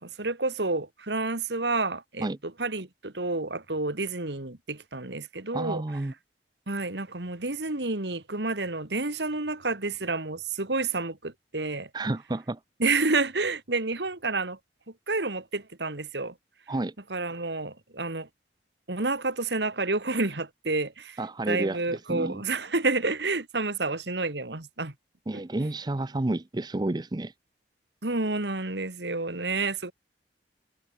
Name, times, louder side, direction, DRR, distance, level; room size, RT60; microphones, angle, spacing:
voice 1, 0.0-5.8 6.7-11.9 12.8-14.6 15.1-16.3 17.1-18.3 18.9-21.2 21.5-24.9 25.3-25.4 28.0-29.9, right 3 dB, 75° right, 2.4 m, -29 dB
voice 2, 5.5-6.1 11.9-12.6 16.7-16.9 21.2-22.4 25.3-27.3, right 2 dB, 25° right, 0.6 m, -30 dB
head